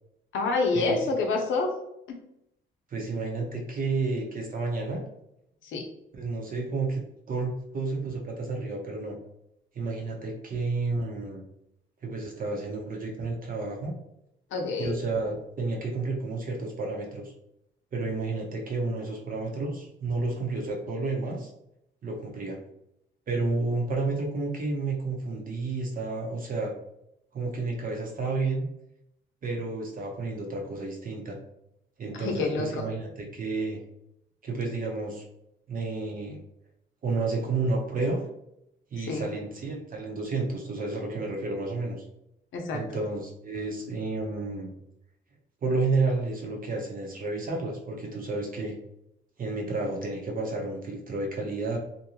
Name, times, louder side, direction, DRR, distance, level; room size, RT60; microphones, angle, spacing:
voice 1, 0.3-1.7 2.1-2.2 5.7-5.8 14.5-15.0 32.1-32.8 39.0-39.3 42.5-42.8, left 3 dB, 75° left, 2 dB, 0.6 m, -27 dB
voice 2, 2.9-5.0 6.1-7.0 7.3-9.2 9.7-11.4 12.0-13.9 14.8-17.3 17.9-21.5 22.0-22.6 23.3-26.7 27.3-28.7 29.4-31.4 32.0-33.8 34.4-35.2 35.7-36.4 37.0-38.2 38.9-42.0 42.7-44.7 45.6-48.8 49.4-51.8, right 3 dB, 45° right, -1 dB, 0.8 m, -31 dB
2.6 x 2.2 x 3.0 m, 0.80 s
cardioid pair, 90°, 20 cm